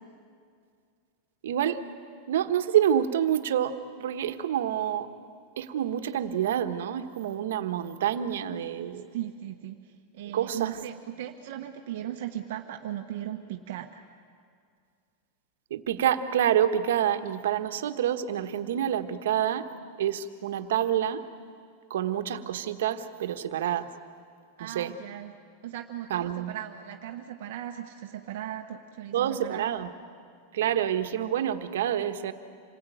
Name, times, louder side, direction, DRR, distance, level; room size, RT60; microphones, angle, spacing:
voice 1, 1.4-1.8 2.3-5.1 5.6-9.1 10.3-10.8 15.7-19.7 20.0-21.2 21.9-23.9 24.6-24.9 26.1-26.5 29.1-29.9 30.5-32.3, right 10 dB, 80° right, 8 dB, 1.3 m, -27 dB
voice 2, 9.1-14.0 24.6-25.3 25.6-29.7, right 11 dB, 55° right, 3 dB, 1.2 m, -38 dB
27.0 x 20.5 x 9.3 m, 2.2 s
supercardioid pair, 180°, 0 cm